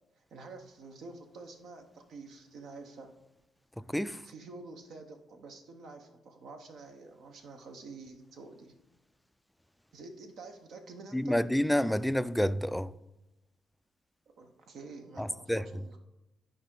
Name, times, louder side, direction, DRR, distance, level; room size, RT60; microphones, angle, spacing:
voice 1, 0.3-3.1 4.2-8.8 9.9-11.4 14.3-16.0, right 3 dB, 70° right, 0.9 m, -48 dB
voice 2, 3.8-4.2 11.1-12.9 15.2-15.6, equal, 5° left, 0.3 m, -29 dB
12.5 x 4.9 x 3.8 m
cardioid pair, 90°, 0 cm